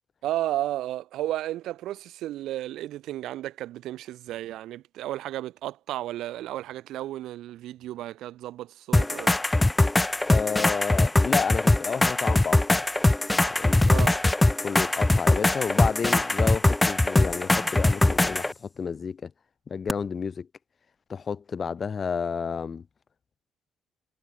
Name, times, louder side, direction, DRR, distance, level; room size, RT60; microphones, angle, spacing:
voice 1, 0.2-9.4 13.8-14.2, right 14 dB, 85° right, 0.4 m, -33 dB
sound 1, 8.9-18.5 19.9-20.0, left 2 dB, 15° left, 0.3 m, -22 dB
voice 2, 10.3-12.8 13.5-13.8 14.6-19.3 19.7-20.5 21.1-22.9, left 6 dB, 45° left, 0.8 m, -31 dB
cardioid pair, 90°, 0 cm